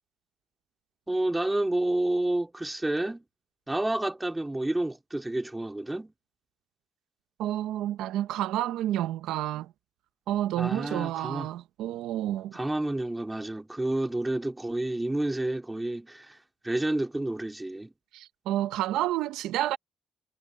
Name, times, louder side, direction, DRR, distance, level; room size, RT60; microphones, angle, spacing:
voice 1, 1.1-3.2 3.7-6.1 10.6-11.5 12.5-16.4 16.6-17.9, right 1 dB, 10° right, 2.5 m, -29 dB
voice 2, 7.4-9.7 10.3-12.5 18.1-19.8, right 13 dB, 90° right, 0.6 m, -30 dB
cardioid pair, 90°, 0 cm